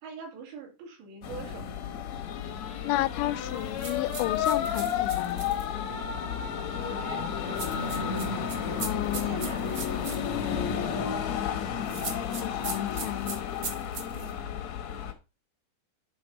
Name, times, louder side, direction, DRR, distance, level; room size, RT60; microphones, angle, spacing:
voice 1, 0.0-1.7 6.7-7.2 9.1-10.2 14.1-14.5, right 5 dB, 85° right, 4.7 m, -43 dB
sound 1, 1.2-15.1, left 8 dB, 70° left, 1.6 m, -32 dB
voice 2, 2.8-5.5 8.8-9.4 12.4-13.4, left 16 dB, 90° left, 2.7 m, -32 dB
sound 2, 3.8-5.7 7.6-10.2 11.8-14.3, right 4 dB, 50° right, 1.5 m, -38 dB
10.5 x 4.2 x 5.4 m
omnidirectional pair, 4.8 m